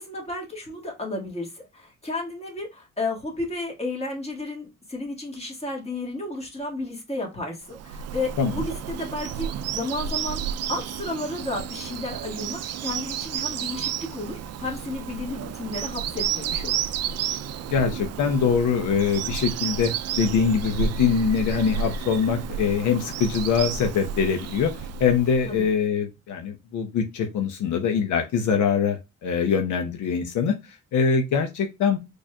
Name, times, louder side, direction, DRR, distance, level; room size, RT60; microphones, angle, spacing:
voice 1, 0.0-10.4 10.7-16.8 25.5-25.7, left 2 dB, 20° left, -1 dB, 1.8 m, -32 dB
Bird vocalization bird call bird song, 7.7-25.7, right 8 dB, 60° right, 0.4 m, -31 dB
voice 2, 17.7-32.0, left 6 dB, 75° left, 5 dB, 0.8 m, -23 dB
4.2 x 3.3 x 2.2 m, 0.24 s
cardioid pair, 90°, 30 cm